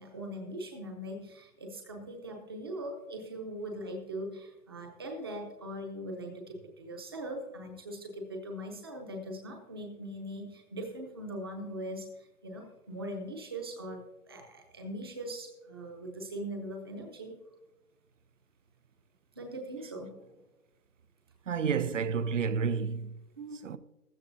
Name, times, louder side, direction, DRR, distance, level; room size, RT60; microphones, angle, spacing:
voice 1, 0.0-17.4 19.4-20.2 23.4-23.8, right 1 dB, 15° right, 0.7 m, -41 dB
voice 2, 21.5-23.2 23.6-23.8, right 6 dB, 55° right, 0.6 m, -30 dB
14.5 x 13.5 x 2.6 m
hypercardioid pair, 165°, 46 cm